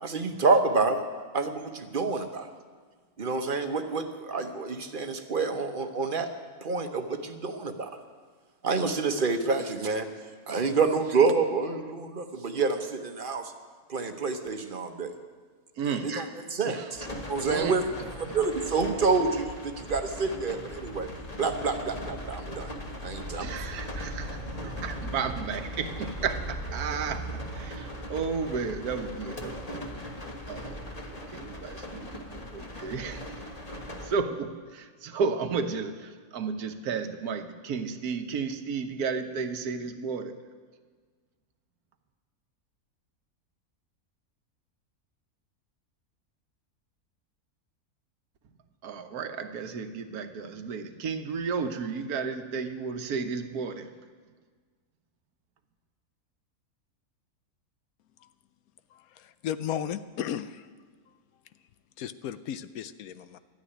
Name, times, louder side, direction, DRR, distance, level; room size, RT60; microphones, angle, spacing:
voice 1, 0.0-1.0 1.3-2.5 3.2-6.3 6.6-7.9 8.6-10.1 10.5-13.5 13.9-15.1 16.0-17.8 18.2-21.1 21.4-22.7 23.0-23.5, right 4 dB, 40° right, 7 dB, 1.1 m, -28 dB
voice 2, 15.8-16.1 16.7-16.9 17.4-17.8 22.5-22.6 23.3-29.9 30.5-30.8 31.1-33.4 34.0-40.3 48.8-53.9, right 5 dB, 90° right, 8 dB, 1.5 m, -33 dB
sound 1, 16.9-34.2, equal, 25° left, 1.4 m, -38 dB
voice 3, 58.9-60.7 62.0-63.4, left 9 dB, 75° left, 13 dB, 1.1 m, -35 dB
12.5 x 9.8 x 10.0 m, 1.5 s
omnidirectional pair, 1.6 m